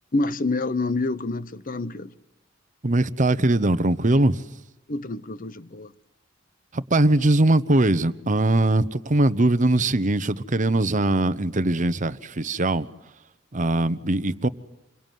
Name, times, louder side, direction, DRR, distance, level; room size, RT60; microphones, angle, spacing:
voice 1, 0.1-2.1 4.9-5.9, left 2 dB, 45° left, 0.9 m, -27 dB
voice 2, 2.8-4.4 6.7-12.9 13.5-14.5, right 2 dB, 40° right, 1.0 m, -21 dB
27.5 x 22.5 x 9.3 m
head